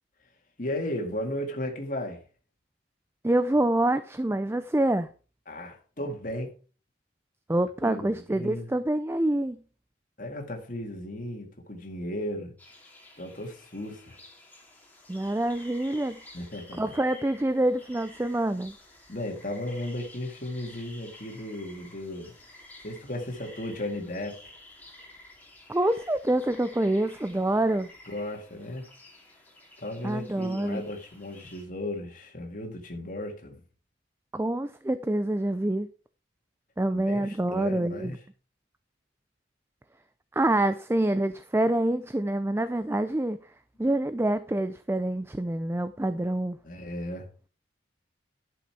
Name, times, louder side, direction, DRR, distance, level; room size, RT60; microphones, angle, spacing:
voice 1, 0.6-2.2 5.5-6.5 7.8-8.7 10.2-12.5 13.2-14.2 16.3-16.9 19.1-22.3 22.8-24.6 28.1-28.9 29.8-33.6 36.9-38.2 46.6-47.3, left 1 dB, 40° left, 2.1 m, -35 dB
voice 2, 3.2-5.1 7.5-9.6 15.1-16.2 16.8-18.7 25.7-27.9 30.0-30.8 34.3-35.9 36.8-38.1 40.3-43.4 43.8-46.6, right 1 dB, 10° right, 0.4 m, -26 dB
sound 1, 12.6-31.6, left 1 dB, 10° left, 2.6 m, -52 dB
11.5 x 6.8 x 4.7 m
head